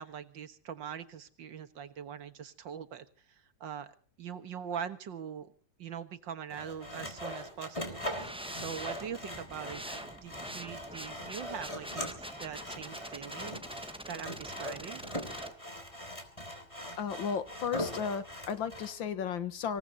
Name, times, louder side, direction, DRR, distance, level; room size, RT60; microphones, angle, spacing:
voice 1, 0.0-3.1 3.6-3.9 4.2-5.5 5.8-8.0 8.5-13.6 14.1-15.0, right 8 dB, 75° right, 10 dB, 2.1 m, -42 dB
Sawing, 6.5-18.9, equal, 15° left, 3.3 m, -41 dB
sound 1, 8.0-15.5, right 1 dB, 5° right, 0.7 m, -45 dB
voice 2, 17.0-19.8, left 7 dB, 90° left, 12 dB, 2.1 m, -34 dB
26.0 x 17.5 x 2.9 m, 0.41 s
omnidirectional pair, 2.0 m